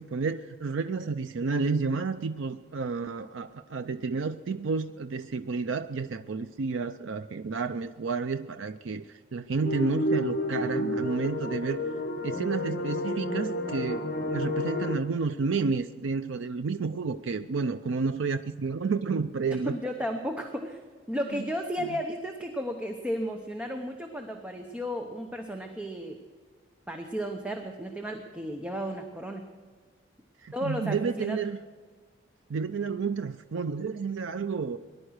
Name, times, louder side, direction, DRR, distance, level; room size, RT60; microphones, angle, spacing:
voice 1, 0.0-11.8 12.2-19.8 21.3-21.4 21.8-22.0 30.4-31.6 32.5-34.8, right 4 dB, 85° right, 10 dB, 0.5 m, -31 dB
sound 1, 9.6-14.9, left 1 dB, 55° left, 1.5 m, -30 dB
voice 2, 19.7-20.8 21.1-26.2 26.9-29.5 30.5-31.4, equal, 5° right, 3 dB, 0.9 m, -34 dB
20.0 x 11.5 x 6.4 m, 1.5 s
head